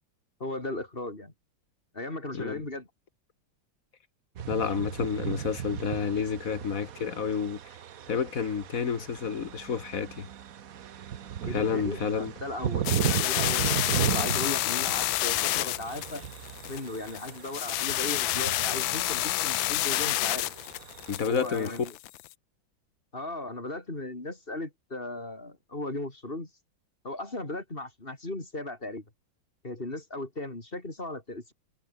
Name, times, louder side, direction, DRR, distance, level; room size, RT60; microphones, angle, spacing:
voice 1, 0.4-1.3 1.9-2.9 11.5-16.2 16.7-20.5 21.3-22.0 23.1-26.5 27.0-29.0 29.6-31.5, left 2 dB, 30° left, 4.1 m, -37 dB
sound 1, 4.4-21.2, right 9 dB, 55° right, 1.3 m, -36 dB
voice 2, 4.5-7.6 8.1-10.3 11.5-12.3 21.1-21.8, left 6 dB, 50° left, 2.0 m, -30 dB
sound 2, 12.8-22.3, left 15 dB, 90° left, 1.4 m, -29 dB
omnidirectional pair, 2.0 m